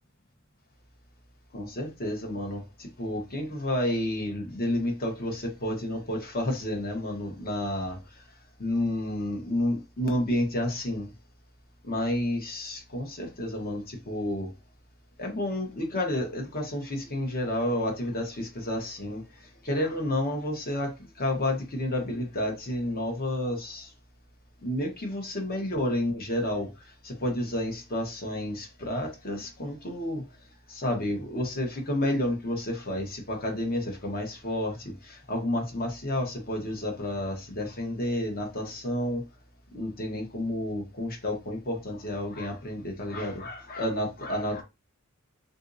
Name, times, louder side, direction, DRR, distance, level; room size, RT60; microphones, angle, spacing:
voice 1, 1.5-8.2 8.6-11.1 11.8-14.5 15.2-23.9 24.6-30.2 30.7-39.2 39.7-44.6, left 1 dB, 45° left, 1.0 m, -30 dB
3.7 x 2.6 x 2.6 m
head